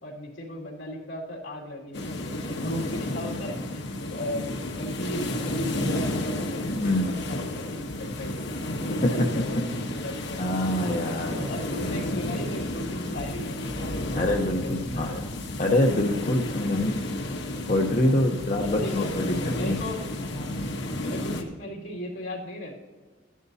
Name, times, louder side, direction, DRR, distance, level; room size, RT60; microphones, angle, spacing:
voice 1, 0.0-10.5 11.0-14.3 14.6-15.3 16.5-16.9 18.0-18.1 18.6-20.5 20.9-22.7, left 1 dB, 85° left, -3 dB, 2.6 m, -37 dB
sound 1, 1.9-21.4, left 1 dB, 60° left, 1.1 m, -32 dB
voice 2, 6.8-7.1 9.0-9.1 10.4-11.4 14.2-15.2 15.6-17.1 17.7-19.7, left 1 dB, 40° left, 1 dB, 0.8 m, -25 dB
13.5 x 11.0 x 2.8 m, 1.4 s
head